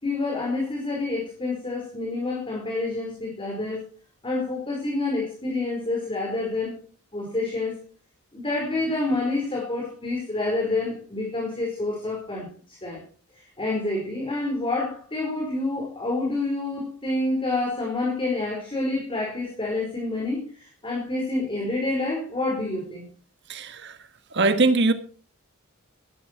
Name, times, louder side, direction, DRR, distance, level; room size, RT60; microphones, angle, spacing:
voice 1, 0.0-3.8 4.2-6.7 7.1-7.7 8.3-13.0 13.3-23.1, left 2 dB, 25° left, -1 dB, 4.6 m, -28 dB
voice 2, 23.5-24.9, right 3 dB, 55° right, 9 dB, 1.6 m, -22 dB
17.0 x 12.5 x 4.6 m, 0.41 s
head